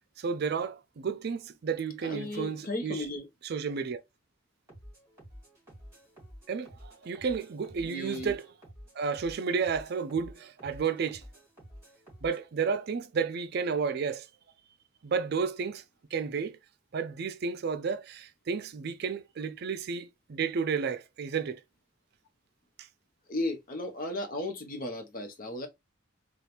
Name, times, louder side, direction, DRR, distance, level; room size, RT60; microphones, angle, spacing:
voice 1, 0.2-3.0 3.5-4.0 6.5-8.4 9.0-11.2 12.2-14.3 15.0-15.8 16.1-16.6 16.9-21.6 22.8-22.9, right 5 dB, 50° right, 0.4 m, -32 dB
voice 2, 2.0-3.3 7.8-8.4 23.3-25.7, left 1 dB, 45° left, 0.9 m, -35 dB
sound 1, 4.7-12.5, equal, 15° right, 2.5 m, -51 dB
4.3 x 2.4 x 3.3 m
head